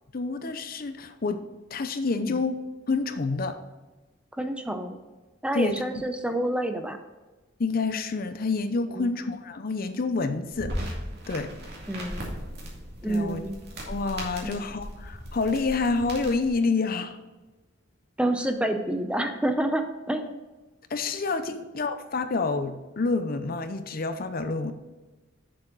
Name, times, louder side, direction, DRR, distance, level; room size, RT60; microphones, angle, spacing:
voice 1, 0.1-1.4 1.7-2.6 2.9-3.6 5.5-6.0 7.6-10.7 11.3-11.5 13.0-13.4 13.9-17.2 20.9-24.7, left 3 dB, 50° left, 9 dB, 0.6 m, -28 dB
voice 2, 4.4-5.0 5.4-7.0 9.0-9.1 11.9-12.3 13.0-13.5 14.4-14.6 18.2-20.4, right 1 dB, 5° right, 6 dB, 0.6 m, -28 dB
sound 1, 10.5-16.5, equal, 60° right, 2.3 m, -37 dB
7.3 x 6.8 x 3.9 m, 1.2 s
head